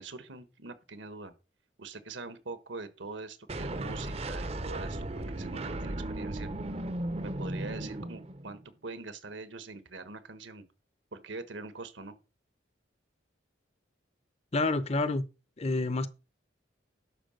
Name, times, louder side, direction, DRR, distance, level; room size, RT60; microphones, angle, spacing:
voice 1, 0.0-1.3 1.8-6.5 7.2-10.6 11.1-12.2, right 3 dB, 80° right, 1.4 m, -43 dB
sound 1, 3.5-8.6, right 1 dB, 35° right, 0.7 m, -36 dB
voice 2, 14.5-15.2 15.6-16.1, left 2 dB, 35° left, 0.7 m, -28 dB
11.5 x 4.9 x 6.5 m
head